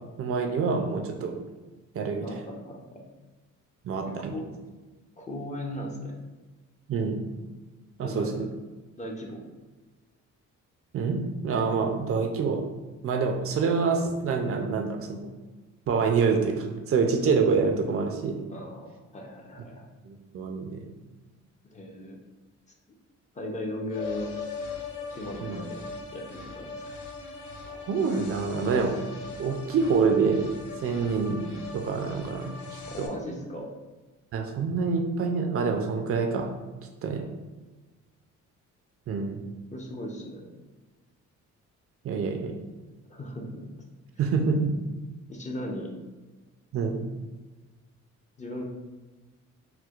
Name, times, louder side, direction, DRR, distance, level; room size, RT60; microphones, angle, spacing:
voice 1, 0.2-1.4 1.9-2.3 3.8-4.3 6.9-7.2 8.0-8.3 10.9-12.6 13.0-15.2 15.9-18.4 20.0-20.9 25.4-25.6 27.7-29.0 29.4-30.4 30.8-31.5 31.7-33.1 34.3-36.5 37.0-37.2 39.1-39.4 42.0-42.5 44.2-44.7 46.7-47.0, right 5 dB, 50° right, 3 dB, 0.4 m, -26 dB
voice 2, 2.2-3.0 4.0-4.5 5.2-6.1 8.0-8.5 9.0-9.5 18.5-19.9 21.7-22.2 23.3-24.3 25.1-25.8 26.1-26.8 32.9-33.7 39.7-40.5 43.1-43.8 45.3-45.9 48.4-48.6, left 1 dB, 25° left, 0 dB, 0.5 m, -37 dB
sound 1, 23.9-33.1, left 4 dB, 80° left, 0.6 m, -40 dB
4.3 x 2.1 x 2.4 m, 1.2 s
cardioid pair, 115°, 30 cm